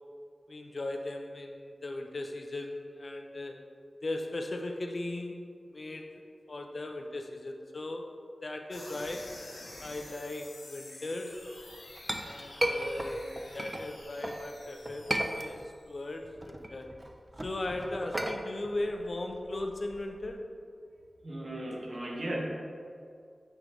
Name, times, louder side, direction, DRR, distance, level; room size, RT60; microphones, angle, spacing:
voice 1, 0.5-3.6 4.0-5.4 5.7-6.2 6.5-8.1 8.4-9.3 9.8-11.5 12.2-15.1 15.3-16.9 17.4-20.5, left 2 dB, 55° left, 4 dB, 0.5 m, -38 dB
sound 1, 8.7-16.2, left 2 dB, 85° left, 1.0 m, -49 dB
Chink clink, 11.6-14.4 14.8-15.9 16.2-20.3, right 1 dB, 25° right, 0.5 m, -35 dB
voice 2, 21.2-22.4, right 1 dB, 55° right, -2 dB, 1.1 m, -36 dB
9.8 x 3.4 x 3.1 m, 2.3 s
wide cardioid pair, 75°, 0 cm